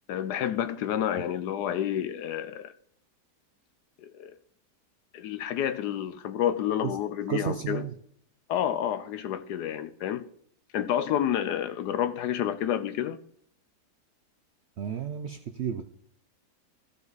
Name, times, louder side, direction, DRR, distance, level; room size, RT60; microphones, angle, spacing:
voice 1, 0.1-2.7 4.0-4.3 5.1-7.8 8.5-10.3 10.7-13.2, left 10 dB, 75° left, 1.2 m, -29 dB
voice 2, 7.3-7.9 14.8-15.8, right 8 dB, 65° right, 0.6 m, -32 dB
14.5 x 5.5 x 4.0 m
omnidirectional pair, 1.8 m